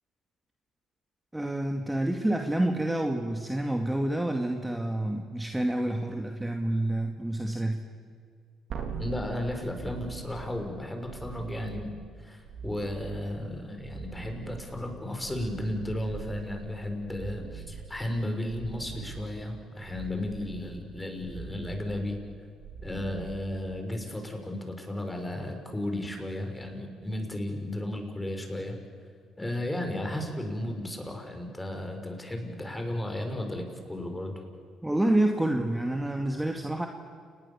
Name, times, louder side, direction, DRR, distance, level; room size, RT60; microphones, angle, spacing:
voice 1, 1.3-7.9 34.8-36.9, right 1 dB, 10° right, 3 dB, 2.3 m, -28 dB
sound 1, 8.7-24.0 27.1-27.2, right 5 dB, 60° right, 3.9 m, -42 dB
voice 2, 9.0-11.9 12.2-22.2 22.8-28.8 29.4-34.3, left 1 dB, 15° left, 4 dB, 6.3 m, -34 dB
30.0 x 20.0 x 7.3 m, 2.1 s
hypercardioid pair, 55°, 0 cm